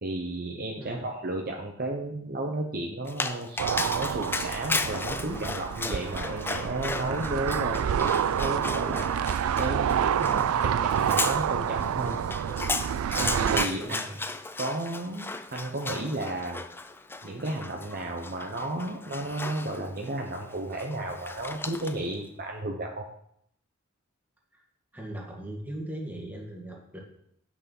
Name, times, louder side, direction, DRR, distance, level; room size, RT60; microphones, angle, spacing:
voice 1, 0.0-8.1 8.4-9.1 9.6-12.2 13.1-14.0 14.6-16.6 17.2-23.0, right 2 dB, 45° right, 1 dB, 1.0 m, -33 dB
Dog, 3.1-22.1, left 3 dB, 10° left, 0.4 m, -35 dB
sound 1, 3.6-13.7, right 8 dB, 85° right, 0.3 m, -28 dB
voice 2, 13.8-14.2 24.5-24.6 24.9-27.0, right 1 dB, 10° right, -1 dB, 1.9 m, -39 dB
8.3 x 6.4 x 5.5 m, 0.71 s
head